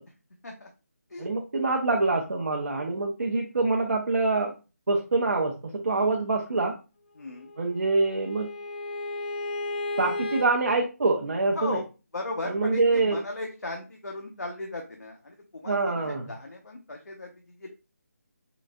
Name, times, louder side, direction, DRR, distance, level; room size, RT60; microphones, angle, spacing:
voice 1, 1.2-4.5 4.9-6.8 7.6-8.5 10.0-11.8 12.5-13.2 15.7-16.3, right 3 dB, 60° right, 1 dB, 0.6 m, -25 dB
voice 2, 5.9-6.2 7.2-7.5 11.5-11.8 12.1-17.7, left 2 dB, 80° left, 1 dB, 0.7 m, -37 dB
Bowed string instrument, 7.3-10.5, left 2 dB, 35° left, 0.6 m, -34 dB
3.8 x 2.5 x 2.2 m, 0.31 s
figure-of-eight pair, 155°, 9 cm